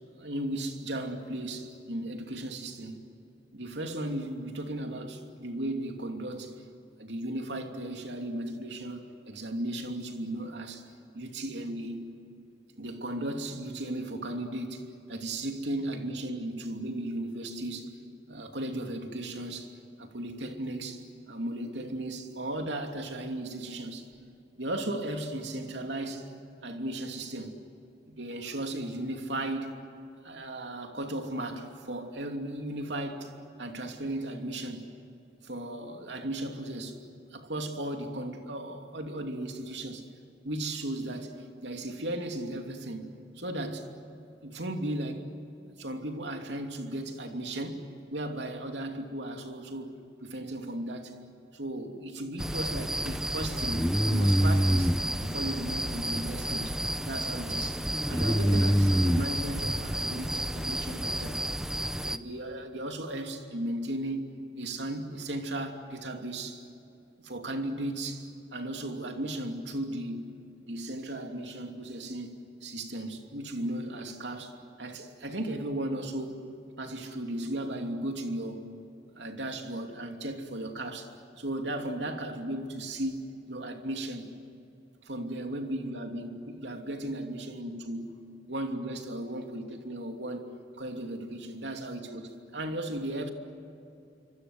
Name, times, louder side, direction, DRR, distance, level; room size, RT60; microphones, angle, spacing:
voice 1, 0.2-3.0 3.5-6.6 7.0-10.8 11.1-12.1 12.8-18.0 18.3-19.7 20.0-24.1 24.6-26.3 26.6-27.6 28.1-29.7 30.2-33.3 33.6-34.8 35.4-37.0 37.3-40.0 40.4-43.9 44.4-45.3 45.8-47.9 48.1-50.0 50.2-51.1 51.5-56.8 57.1-57.8 58.1-61.4 62.0-64.2 64.6-66.6 67.2-70.3 70.6-76.4 76.8-78.6 79.1-81.1 81.4-83.2 83.5-84.3 85.0-88.1 88.5-90.5 90.8-93.3, right 1 dB, 80° right, 2.9 m, -36 dB
sound 1, 52.4-62.2, equal, 5° right, 0.7 m, -28 dB
27.5 x 25.5 x 8.0 m
head